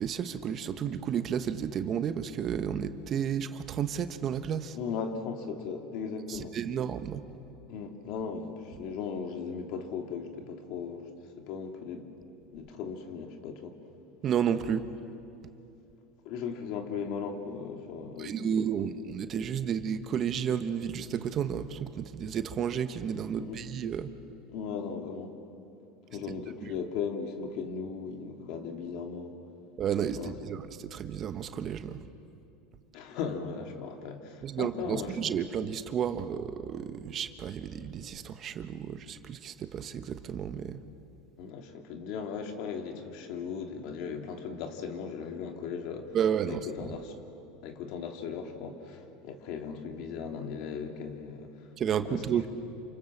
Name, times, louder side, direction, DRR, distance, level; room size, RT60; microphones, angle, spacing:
voice 1, 0.0-4.8 6.3-7.2 14.2-14.8 18.2-24.1 29.8-32.0 34.4-40.8 46.1-46.9 51.8-52.5, right 8 dB, 40° right, 9 dB, 1.3 m, -32 dB
voice 2, 4.7-6.6 7.7-11.0 11.4-12.1 12.5-13.8 16.2-18.5 23.4-23.6 24.5-25.3 26.1-29.4 30.2-30.3 32.9-35.2 41.4-46.2 46.4-47.1 47.6-51.7 52.1-52.2, left 6 dB, 60° left, 4 dB, 2.9 m, -37 dB
28.5 x 26.5 x 7.4 m, 2.7 s
supercardioid pair, 120°, 0 cm